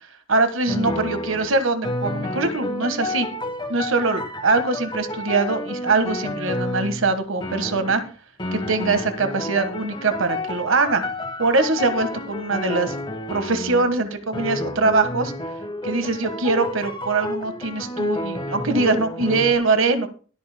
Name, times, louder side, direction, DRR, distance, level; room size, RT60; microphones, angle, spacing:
voice 1, 0.3-3.3 3.7-8.0 8.5-11.0 11.4-12.9 13.3-15.3 15.8-20.1, right 3 dB, 70° right, 9 dB, 1.5 m, -22 dB
sound 1, 0.7-7.2 7.4-8.1 8.4-14.0 14.3-19.5, left 1 dB, 20° left, 1.4 m, -30 dB
22.0 x 8.4 x 2.2 m, 0.38 s
head